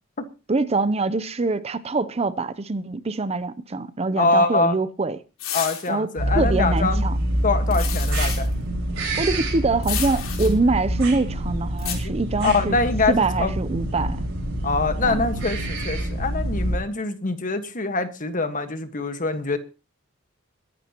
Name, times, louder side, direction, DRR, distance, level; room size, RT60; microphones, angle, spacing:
voice 1, 0.5-5.2 5.9-7.2 9.2-12.8 13.1-14.2 15.0-15.2, right 3 dB, 30° right, 0.6 m, -24 dB
voice 2, 4.2-4.8 5.5-7.0 7.4-8.5 12.0-12.1 12.4-13.5 14.6-19.6, left 3 dB, 40° left, 1.5 m, -24 dB
sound 1, 5.4-5.9 7.7-8.5 9.8-10.5 11.8-12.0, left 9 dB, 75° left, 3.9 m, -30 dB
sound 2, 6.2-16.8, right 1 dB, 70° right, 4.7 m, -26 dB
22.0 x 11.5 x 3.0 m
head